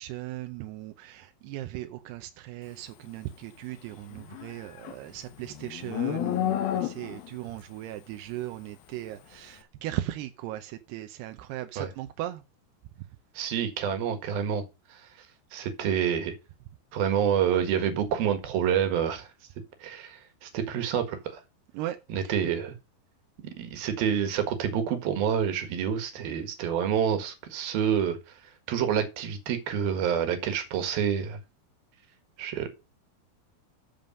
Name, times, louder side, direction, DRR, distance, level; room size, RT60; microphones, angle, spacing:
voice 1, 0.0-12.4 21.7-22.0, right 15 dB, 90° right, 2.8 m, -37 dB
Livestock farm animals working animals, 4.1-7.4, left 12 dB, 75° left, 2.7 m, -31 dB
voice 2, 13.3-14.6 14.9-15.0 15.5-16.4 16.9-19.3 19.8-21.4 22.1-22.8 23.6-28.2 28.7-31.4 32.4-32.7, right 8 dB, 70° right, 3.4 m, -28 dB
13.0 x 5.4 x 5.3 m
omnidirectional pair, 4.6 m